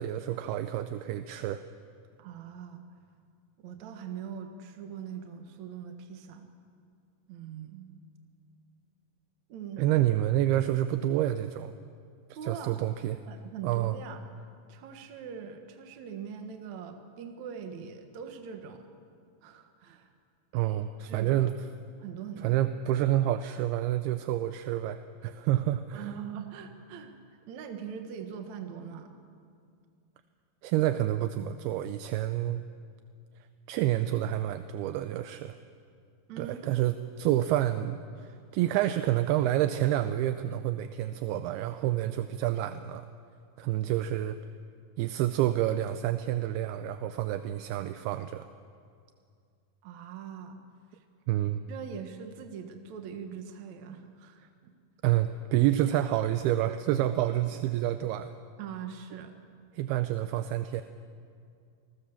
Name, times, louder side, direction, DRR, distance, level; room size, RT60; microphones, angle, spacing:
voice 1, 0.0-1.6 9.8-11.7 12.4-13.2 13.6-14.0 20.5-21.5 22.4-26.1 30.6-32.6 33.7-35.6 36.4-43.1 43.6-44.4 45.0-48.5 51.3-51.6 55.0-58.3 59.7-60.8, right 13 dB, 80° right, 10 dB, 2.6 m, -28 dB
voice 2, 2.2-2.9 3.6-6.5 7.3-7.9 9.5-9.8 12.3-12.8 13.3-14.3 14.7-18.9 19.4-20.1 21.0-21.5 22.0-22.5 25.9-27.2 27.5-29.1 36.3-36.6 49.8-50.6 50.9-51.0 51.7-54.7 57.3-57.4 58.6-59.3, right 7 dB, 55° right, 5 dB, 2.3 m, -42 dB
29.0 x 19.5 x 7.2 m, 2.3 s
omnidirectional pair, 4.6 m